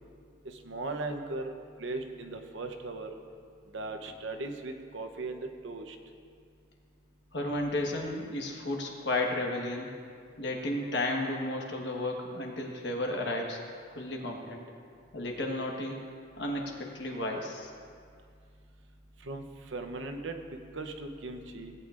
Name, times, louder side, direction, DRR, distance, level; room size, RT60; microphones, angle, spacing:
voice 1, 0.4-3.1 3.7-6.0 19.2-21.7, right 2 dB, 70° right, 5 dB, 0.8 m, -38 dB
voice 2, 7.3-9.9 10.4-13.6 13.9-14.6 15.1-16.0 16.4-17.7, left 1 dB, 55° left, 0 dB, 1.4 m, -33 dB
18.0 x 9.2 x 2.5 m, 2.2 s
head